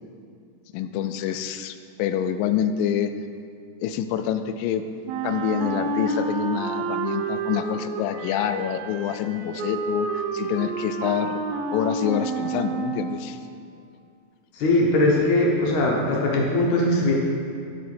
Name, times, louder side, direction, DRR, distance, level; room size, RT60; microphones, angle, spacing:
voice 1, 0.7-3.1 3.8-4.8 5.2-11.4 11.7-13.4, left 9 dB, 80° left, 9 dB, 2.2 m, -27 dB
Wind instrument woodwind instrument, 5.1-13.2, right 4 dB, 90° right, 2.5 m, -29 dB
voice 2, 14.6-17.1, left 2 dB, 65° left, -3 dB, 2.2 m, -20 dB
11.0 x 6.7 x 4.4 m, 2.5 s
omnidirectional pair, 4.2 m